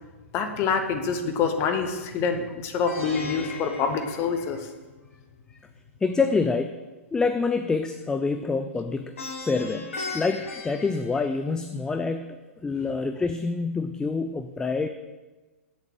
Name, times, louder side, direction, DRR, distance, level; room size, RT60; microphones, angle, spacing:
voice 1, 0.3-4.7, left 5 dB, 35° left, 6 dB, 1.1 m, -26 dB
Plucked string instrument, 2.9-5.0 9.2-11.8, left 3 dB, 70° left, 1.8 m, -37 dB
voice 2, 6.0-6.8 7.1-9.1 9.4-14.9, left 4 dB, 10° left, 8 dB, 0.4 m, -27 dB
8.0 x 7.2 x 6.1 m, 1.2 s
figure-of-eight pair, 110°, 7 cm